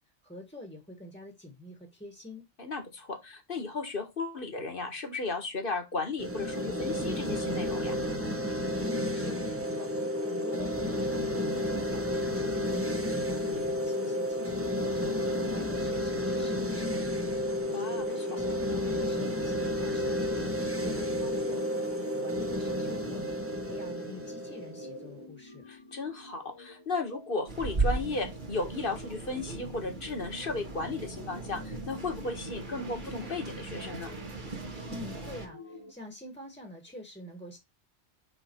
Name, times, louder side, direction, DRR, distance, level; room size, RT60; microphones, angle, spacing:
voice 1, 0.2-2.5 8.8-15.2 15.5-20.5 20.7-23.2 23.6-25.6 34.9-37.6, left 1 dB, 5° left, 1.6 m, -46 dB
voice 2, 2.6-8.0 17.7-18.1 25.7-34.1, left 3 dB, 50° left, 1.8 m, -35 dB
sound 1, 6.2-25.3, left 1 dB, 15° right, 1.0 m, -31 dB
sound 2, 20.2-35.9, left 2 dB, 25° left, 1.2 m, -50 dB
sound 3, 27.5-35.5, right 3 dB, 45° right, 1.8 m, -37 dB
5.8 x 5.6 x 4.5 m
omnidirectional pair, 1.1 m